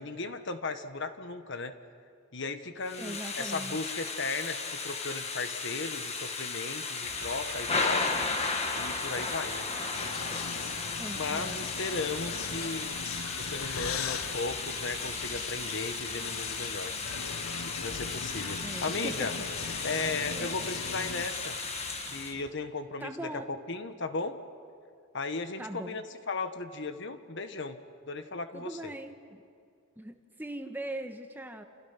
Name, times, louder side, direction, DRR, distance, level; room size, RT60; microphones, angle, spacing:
voice 1, 0.0-1.7 2.3-8.3 8.7-9.7 11.1-12.9 13.4-16.9 17.6-19.3 19.8-21.6 22.1-24.4 25.1-27.8 28.1-28.9, left 3 dB, 55° left, 9 dB, 1.3 m, -36 dB
Thunder / Rain, 2.8-22.3, left 4 dB, 30° left, 1.7 m, -35 dB
voice 2, 3.0-3.8 11.0-11.7 18.6-19.3 19.9-20.1 20.3-20.6 23.0-23.5 25.6-26.0 28.5-29.4 30.0-31.6, right 1 dB, 10° right, 5 dB, 1.4 m, -40 dB
sound 1, 7.0-22.5, right 5 dB, 40° right, 1.1 m, -49 dB
sound 2, 9.9-21.3, left 6 dB, 90° left, 0.8 m, -40 dB
29.5 x 28.5 x 5.9 m, 2.4 s
head